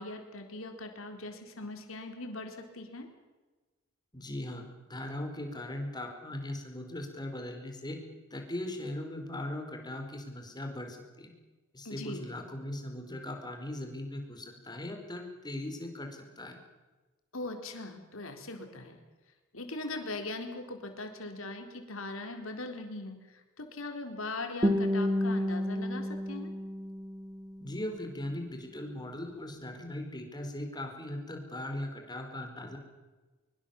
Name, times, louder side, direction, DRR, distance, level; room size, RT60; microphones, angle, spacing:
voice 1, 0.0-3.1 11.8-12.3 17.3-19.0 19.5-26.5, left 2 dB, 75° left, 4 dB, 4.1 m, -40 dB
voice 2, 4.1-8.0 8.3-11.3 11.7-16.6 27.6-32.8, left 1 dB, 20° left, 3 dB, 4.7 m, -39 dB
Guitar, 24.6-27.6, left 1 dB, 20° right, 2.1 m, -30 dB
24.0 x 23.5 x 7.2 m, 1.2 s
head